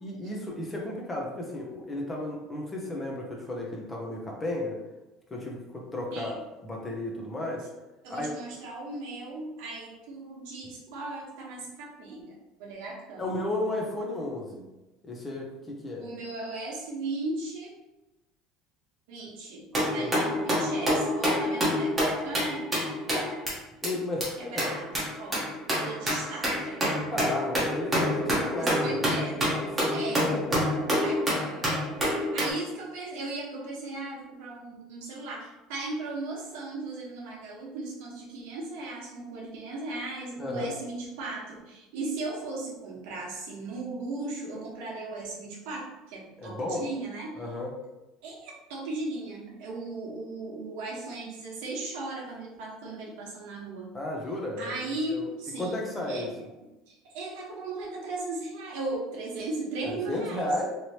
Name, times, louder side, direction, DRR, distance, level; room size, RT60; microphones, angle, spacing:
voice 1, 0.0-4.8 5.3-6.4 6.6-7.7 8.1-8.3 13.2-14.6 15.0-16.1 20.0-20.1 23.8-24.6 27.1-29.0 29.6-30.0 30.3-30.6 40.4-40.7 46.4-46.8 47.4-47.7 53.9-54.7 55.1-55.3 55.6-56.3 59.9-60.7, left 1 dB, 15° left, -1 dB, 0.5 m, -33 dB
voice 2, 8.0-13.2 16.0-17.7 19.1-22.7 24.4-26.8 28.6-29.5 29.9-30.3 31.0-31.6 32.2-47.3 48.2-53.9 54.6-56.3 56.9-60.5, right 2 dB, 75° right, -3 dB, 1.0 m, -37 dB
sound 1, 19.7-23.5 23.8-23.9 24.2-24.3 24.6-32.5, equal, 10° right, 0.9 m, -27 dB
3.1 x 2.8 x 2.8 m, 1.0 s
cardioid pair, 165°, 0 cm